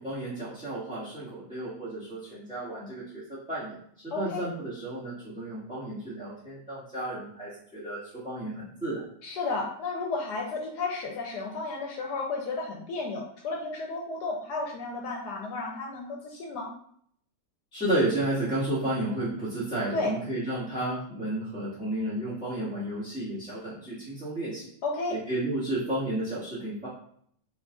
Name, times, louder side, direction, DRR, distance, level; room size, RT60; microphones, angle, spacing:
voice 1, 0.0-9.0 17.7-24.7 25.1-26.9, right 1 dB, 5° right, -13 dB, 1.1 m, -32 dB
voice 2, 4.1-4.5 9.2-16.7 19.9-20.1 24.8-25.2, left 3 dB, 75° left, 0 dB, 1.2 m, -33 dB
3.9 x 2.5 x 3.7 m, 0.65 s
omnidirectional pair, 1.9 m